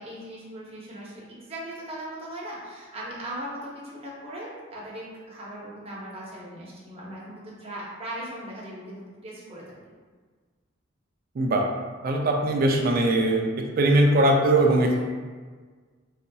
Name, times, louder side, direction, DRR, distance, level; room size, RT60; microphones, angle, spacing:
voice 1, 0.0-9.6 14.9-15.0, right 1 dB, 30° right, -5 dB, 0.8 m, -39 dB
voice 2, 12.0-13.5 13.8-15.0, right 1 dB, 50° right, 1 dB, 0.4 m, -20 dB
4.0 x 2.7 x 2.2 m, 1.5 s
head